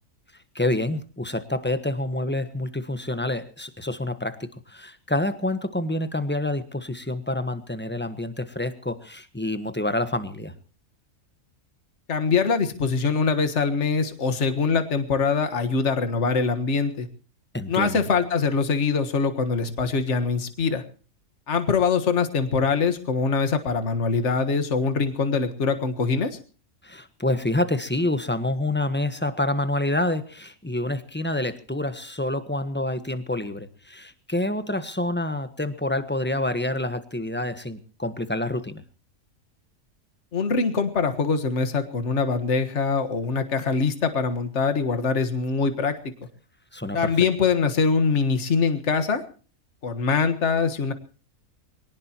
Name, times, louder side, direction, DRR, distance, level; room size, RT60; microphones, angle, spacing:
voice 1, 0.5-10.5 17.5-18.0 26.8-38.8 46.7-47.1, left 1 dB, 10° left, 11 dB, 1.2 m, -27 dB
voice 2, 12.1-17.1 17.7-20.8 21.5-26.4 40.3-46.1 46.9-49.2 49.8-50.9, left 5 dB, 50° left, 8 dB, 1.8 m, -23 dB
23.5 x 18.0 x 3.0 m, 0.39 s
omnidirectional pair, 1.5 m